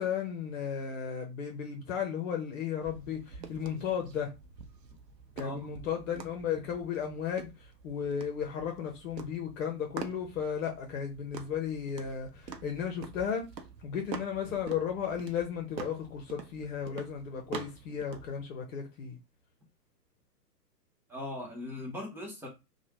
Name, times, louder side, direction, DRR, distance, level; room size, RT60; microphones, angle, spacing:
voice 1, 0.0-4.3 5.4-13.4 13.8-19.2, left 8 dB, 50° left, 1.0 m, -34 dB
sound 1, 2.8-18.4, right 6 dB, 90° right, 0.7 m, -46 dB
voice 2, 21.1-22.5, left 1 dB, 5° right, 0.5 m, -39 dB
3.1 x 2.3 x 2.8 m
hypercardioid pair, 115°, 49 cm